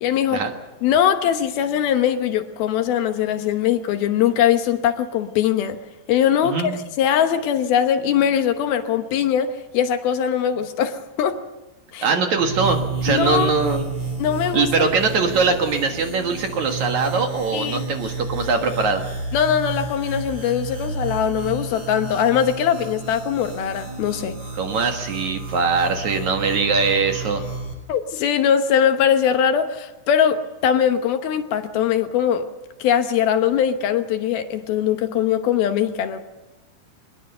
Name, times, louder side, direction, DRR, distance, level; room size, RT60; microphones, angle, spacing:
voice 1, 0.0-0.4 0.8-5.8 6.1-11.4 11.9-12.1 13.1-13.5 14.2-14.9 17.5-17.8 19.3-24.4 27.9-32.5 32.8-36.2, left 9 dB, 70° left, 2.8 m, -21 dB
voice 2, 6.4-6.7 12.0-13.9 14.5-19.0 24.5-27.4, right 4 dB, 55° right, 2.4 m, -22 dB
sound 1, 12.4-27.7, right 4 dB, 20° right, 7.3 m, -31 dB
23.5 x 21.0 x 6.8 m
omnidirectional pair, 4.8 m